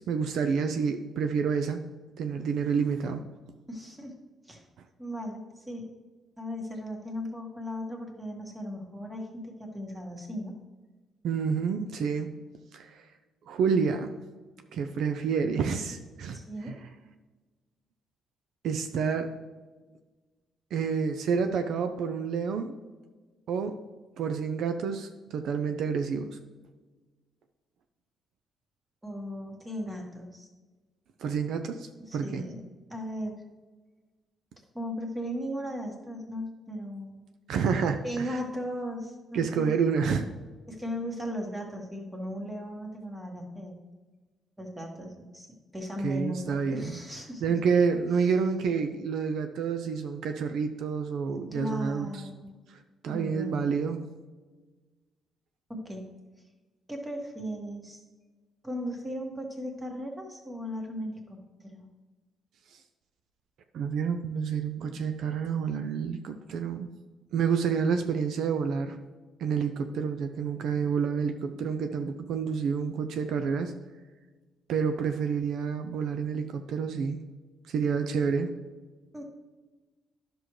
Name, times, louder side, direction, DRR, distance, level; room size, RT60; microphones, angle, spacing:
voice 1, 0.0-1.8 2.2-3.2 11.2-12.3 12.7-13.1 13.5-14.1 14.7-16.4 16.7-16.8 18.6-19.3 20.7-22.8 23.5-23.8 24.2-26.4 31.2-31.9 32.1-32.4 37.5-38.4 39.3-40.3 46.0-47.0 47.4-52.1 53.0-54.0 63.7-66.9 67.3-69.0 69.4-73.7 74.7-77.2 77.7-78.6, right 6 dB, 75° right, 7 dB, 0.5 m, -28 dB
voice 2, 3.7-4.1 4.4-4.6 5.0-5.9 6.4-10.6 16.3-16.8 29.0-30.5 32.0-32.6 32.9-33.4 34.7-37.2 38.0-39.7 40.7-43.8 44.6-45.5 45.7-47.4 51.5-52.5 53.1-53.6 55.7-56.1 56.9-58.0 58.6-61.9 79.1-79.2, equal, 15° right, 1 dB, 1.7 m, -37 dB
10.5 x 6.1 x 3.2 m, 1.3 s
cardioid pair, 90°, 0 cm